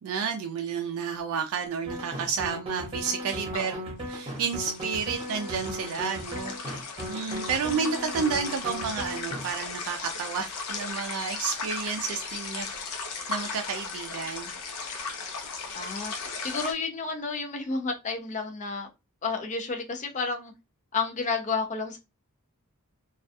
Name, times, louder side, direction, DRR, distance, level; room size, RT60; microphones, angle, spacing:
voice 1, 0.0-3.7 4.1-6.8 7.1-12.7 12.9-13.0 13.3-14.5, right 6 dB, 65° right, 0.3 m, -31 dB
sound 1, 1.9-9.4, equal, 25° right, 0.9 m, -36 dB
voice 2, 3.5-3.8 15.7-16.1 16.4-18.9 19.2-20.5 20.9-22.0, left 4 dB, 35° left, 0.5 m, -31 dB
sound 2, 4.0-16.7, left 4 dB, 90° left, 0.6 m, -37 dB
2.3 x 2.2 x 2.5 m
head